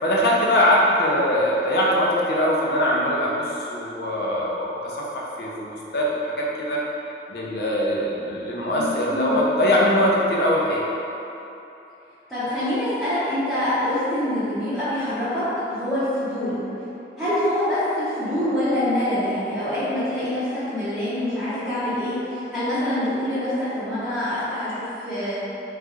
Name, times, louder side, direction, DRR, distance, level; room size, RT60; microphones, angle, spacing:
voice 1, 0.0-4.7 4.9-6.8 7.3-10.8, equal, 60° left, -4 dB, 0.6 m, -22 dB
voice 2, 8.7-9.4 12.3-16.6 17.2-25.4, left 1 dB, ahead, -16 dB, 0.8 m, -25 dB
4.2 x 3.8 x 2.4 m, 3.0 s
head